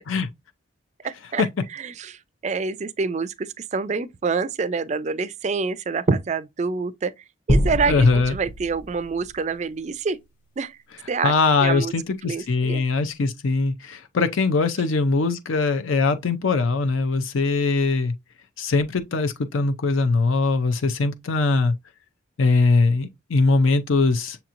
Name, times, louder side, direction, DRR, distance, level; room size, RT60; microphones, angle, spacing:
voice 1, 1.0-7.1 7.5-10.2 10.6-10.8 11.1-11.3 11.6-11.9 12.2-12.8, right 4 dB, 35° right, 0.3 m, -27 dB
sound 1, 7.5-10.0, equal, 40° left, 0.7 m, -26 dB
voice 2, 7.9-8.4 11.2-18.1 18.6-21.8 22.4-24.4, left 3 dB, 75° left, 0.5 m, -21 dB
6.7 x 2.9 x 2.5 m
head